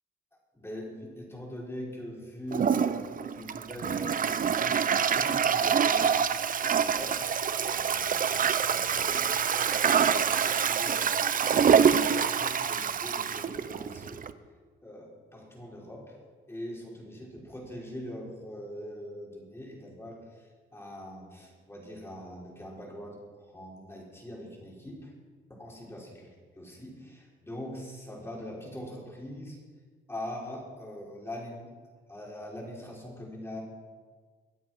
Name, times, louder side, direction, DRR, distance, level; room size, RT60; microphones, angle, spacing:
voice 1, 0.5-7.2 7.5-14.2 14.8-16.2 16.5-25.1 25.5-26.3 26.6-29.6 30.1-31.7 32.1-33.6, left 1 dB, 10° left, -3 dB, 6.0 m, -42 dB
Toilet flush, 2.5-14.3, right 7 dB, 45° right, 0.8 m, -26 dB
23.5 x 8.6 x 6.2 m, 1.5 s
cardioid pair, 90°, 20 cm